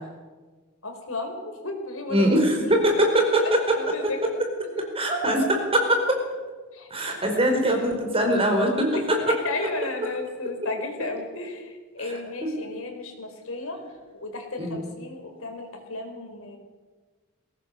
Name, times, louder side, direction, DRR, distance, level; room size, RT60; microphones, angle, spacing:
voice 1, 0.8-2.3 3.0-3.1 3.4-4.2 6.7-7.4 8.9-9.0 9.3-13.8 14.2-16.6, left 2 dB, 70° left, 3 dB, 4.6 m, -34 dB
voice 2, 2.1-3.8 4.0-4.1 4.8-6.2 6.9-9.4 12.0-12.5 14.6-14.8, right 1 dB, 25° right, 2 dB, 4.7 m, -22 dB
22.0 x 18.0 x 6.9 m, 1.3 s
head